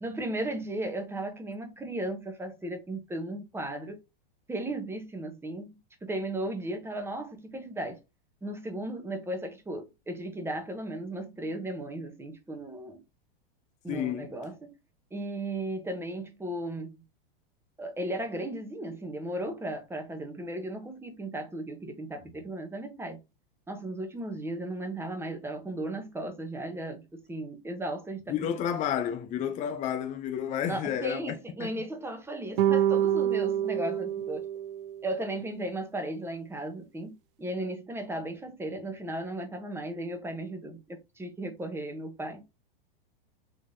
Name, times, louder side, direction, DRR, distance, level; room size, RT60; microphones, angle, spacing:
voice 1, 0.0-4.0 4.5-5.7 6.0-8.0 8.4-13.0 13.8-14.7 15.1-17.0 17.8-23.2 23.7-28.5 30.6-34.4 35.0-37.1 37.4-42.4, right 1 dB, 10° right, 0.9 m, -36 dB
voice 2, 13.9-14.3 28.3-31.8, left 9 dB, 25° left, 0.5 m, -31 dB
sound 1, 32.6-35.1, right 10 dB, 70° right, 0.5 m, -27 dB
3.6 x 3.4 x 2.6 m
hypercardioid pair, 130°, 29 cm